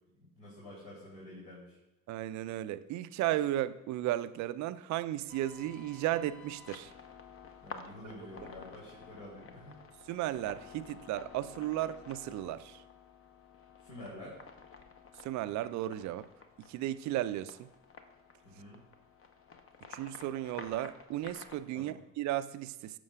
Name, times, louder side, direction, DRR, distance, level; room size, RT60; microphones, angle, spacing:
voice 1, 0.2-1.8 7.6-9.7 13.8-14.4 18.4-18.8 21.7-22.0, left 1 dB, 65° left, 3.0 m, -48 dB
voice 2, 2.1-6.9 10.1-12.8 15.2-16.3 16.7-17.7 19.9-23.0, right 14 dB, 45° right, 0.5 m, -35 dB
sound 1, 5.3-21.6, left 5 dB, 30° left, 0.9 m, -52 dB
14.5 x 6.3 x 2.4 m
figure-of-eight pair, 55°, 42 cm